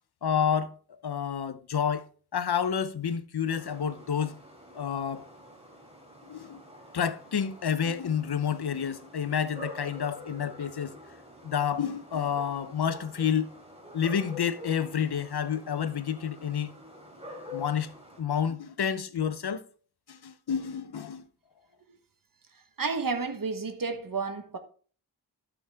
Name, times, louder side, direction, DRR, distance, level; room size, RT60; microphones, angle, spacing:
voice 1, 0.2-2.1 2.3-4.4 4.7-5.3 6.3-6.6 6.9-11.0 11.4-13.5 13.9-16.7 17.5-17.9 18.2-19.6 20.1-21.3, left 7 dB, 75° left, 0.9 m, -29 dB
sound 1, 3.5-18.2, left 1 dB, 15° right, 3.3 m, -47 dB
voice 2, 22.8-24.6, right 4 dB, 55° right, 1.4 m, -31 dB
12.0 x 6.2 x 3.6 m
wide cardioid pair, 75°, 39 cm